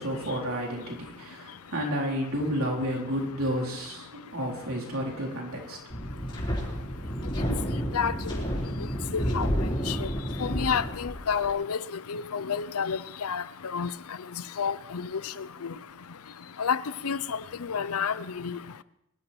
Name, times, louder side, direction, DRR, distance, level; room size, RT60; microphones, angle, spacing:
voice 1, 0.0-5.8, equal, 70° right, -1 dB, 4.1 m, -31 dB
Wind, 5.9-11.5, equal, 20° left, 4.2 m, -30 dB
voice 2, 9.1-9.5 9.9-10.1 10.4-11.8 12.1-13.4 13.7-13.9 14.6-15.1 15.6-15.7 16.6-16.8 17.0-17.4 17.7-18.6, left 6 dB, 85° left, 16 dB, 0.6 m, -29 dB
22.5 x 12.0 x 4.5 m, 0.83 s
head